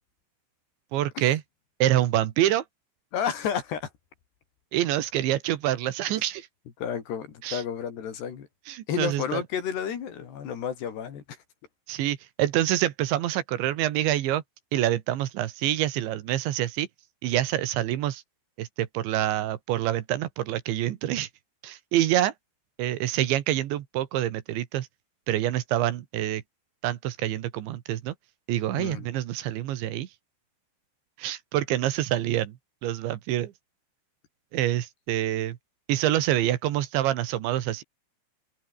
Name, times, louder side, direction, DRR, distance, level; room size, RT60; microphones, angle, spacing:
voice 1, 0.9-1.4 1.8-2.6 4.7-6.5 7.4-7.6 8.7-9.4 11.9-14.4 14.7-16.9 17.2-18.2 18.6-21.3 21.6-22.3 22.8-24.9 25.3-26.4 26.8-28.1 28.5-30.1 31.2-32.6 32.8-33.5 34.5-35.6 35.9-37.8, right 13 dB, 80° right, 3.8 m, -26 dB
voice 2, 3.1-3.9 6.8-8.5 8.9-11.4 28.7-29.1, left 8 dB, 65° left, 5.1 m, -31 dB
open air
omnidirectional pair, 5.3 m